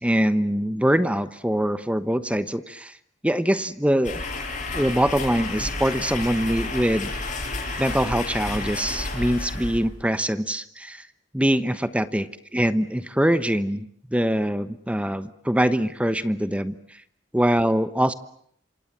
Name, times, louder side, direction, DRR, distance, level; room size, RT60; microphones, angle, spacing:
voice 1, 0.0-2.9 3.2-4.2 4.7-7.1 7.8-11.0 11.3-16.7 17.3-18.1, equal, 5° right, 13 dB, 1.1 m, -23 dB
sound 1, 4.0-10.1, left 2 dB, 40° left, 7.6 m, -31 dB
28.0 x 26.0 x 7.5 m, 0.67 s
head